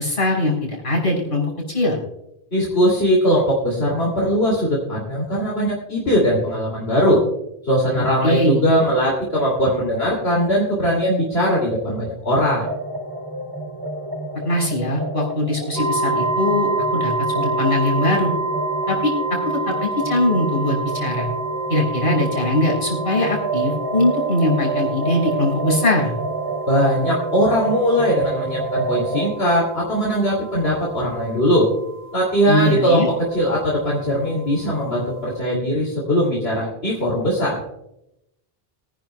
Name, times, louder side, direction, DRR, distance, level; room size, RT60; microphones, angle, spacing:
voice 1, 0.0-2.0 8.2-8.6 14.4-18.3 18.9-21.3 21.7-26.1 32.5-33.1, left 1 dB, 60° left, -3 dB, 5.8 m, -21 dB
voice 2, 2.5-7.2 7.6-12.7 26.7-31.7 32.1-33.0 33.3-37.6, equal, 80° left, -3 dB, 3.0 m, -20 dB
sound 1, 12.6-29.3, right 2 dB, 25° right, 1.4 m, -29 dB
sound 2, 15.8-35.4, right 2 dB, 75° right, 2.2 m, -28 dB
24.0 x 10.5 x 2.3 m, 0.84 s
omnidirectional pair, 1.0 m